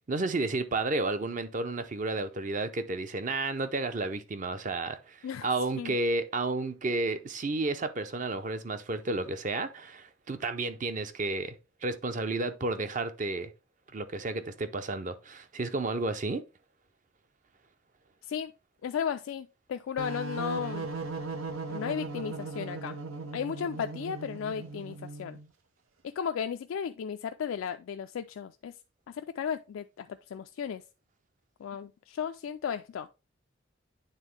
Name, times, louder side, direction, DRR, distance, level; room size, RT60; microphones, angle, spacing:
voice 1, 0.1-11.5 11.8-13.5 13.9-16.4, right 2 dB, 40° right, 0.5 m, -32 dB
voice 2, 18.8-20.9 21.7-23.0 23.3-25.4 26.2-28.8 29.1-30.8 31.6-33.1, left 7 dB, 80° left, 0.3 m, -35 dB
sound 1, 20.0-25.5, right 3 dB, 90° right, 0.9 m, -38 dB
9.0 x 3.6 x 3.2 m
head